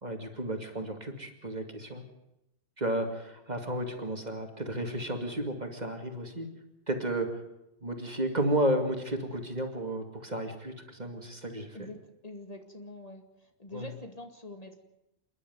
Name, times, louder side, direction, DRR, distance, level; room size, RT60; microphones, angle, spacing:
voice 1, 0.0-2.0 2.8-6.5 6.9-7.4 7.8-11.9 13.7-13.9, right 1 dB, 40° right, 5 dB, 2.5 m, -32 dB
voice 2, 11.7-14.7, left 1 dB, 35° left, 5 dB, 2.3 m, -45 dB
28.0 x 11.0 x 9.3 m, 0.88 s
omnidirectional pair, 1.1 m